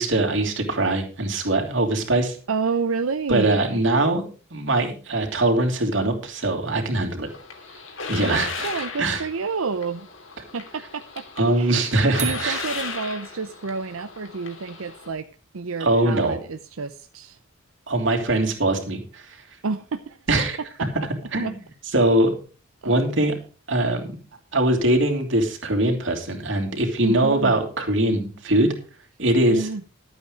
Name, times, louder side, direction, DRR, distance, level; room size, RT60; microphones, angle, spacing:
voice 1, 0.0-2.4 3.3-7.3 8.1-9.2 11.4-12.7 15.8-16.4 17.9-19.4 20.3-20.6 21.3-21.6 21.9-22.3 22.8-23.3 23.7-24.2 24.5-28.7 29.2-29.7, right 1 dB, 60° right, 3 dB, 3.1 m, -22 dB
voice 2, 2.5-3.6 8.2-8.4 8.6-10.1 10.5-11.8 12.2-15.3 15.5-17.4 19.6-20.2 21.4-21.5 22.8-23.0 27.0-27.6 29.5-29.8, right 4 dB, 85° right, 10 dB, 0.7 m, -29 dB
sound 1, 7.3-15.1, left 4 dB, 65° left, 2.7 m, -36 dB
sound 2, 12.2-13.8, right 7 dB, 35° right, 1.7 m, -35 dB
13.0 x 8.7 x 5.1 m, 0.36 s
head